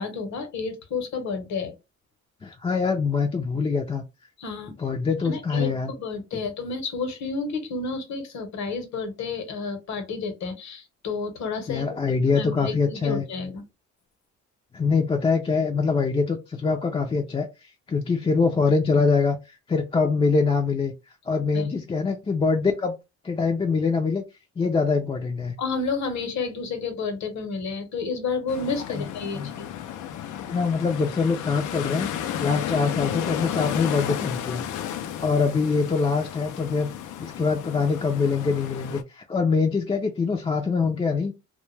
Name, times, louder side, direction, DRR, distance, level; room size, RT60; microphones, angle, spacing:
voice 1, 0.0-1.7 4.4-4.7 5.2-12.0 12.3-13.6 21.5-21.6 25.6-29.7, left 4 dB, 65° left, 6 dB, 0.9 m, -30 dB
voice 2, 2.4-4.0 4.8-5.9 11.7-13.2 14.7-19.4 19.7-20.9 21.3-22.9 23.2-24.2 24.6-25.5 28.9-29.1 29.3-29.5 30.5-32.1 32.4-34.6 35.2-36.9 37.2-41.3, left 4 dB, 20° left, 2 dB, 0.4 m, -24 dB
sound 1, 28.5-39.0, left 10 dB, 85° left, 0.5 m, -33 dB
2.2 x 2.2 x 3.1 m, 0.25 s
cardioid pair, 90°, 30 cm